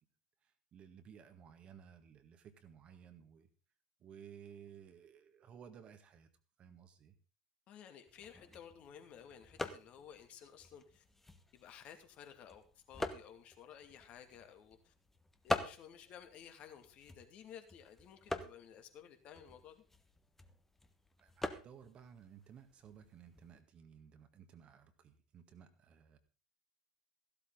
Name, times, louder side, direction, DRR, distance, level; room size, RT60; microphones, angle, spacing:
voice 1, 0.4-3.5 4.0-6.3 6.6-7.2 21.2-26.2, right 8 dB, 35° right, 9 dB, 1.8 m, -57 dB
voice 2, 7.7-11.0 11.5-14.9 15.4-19.8, left 8 dB, 45° left, 7 dB, 2.4 m, -55 dB
sound 1, 8.1-23.6, left 2 dB, 10° left, 1.4 m, -46 dB
15.5 x 12.5 x 3.9 m, 0.34 s
figure-of-eight pair, 75°, 3 cm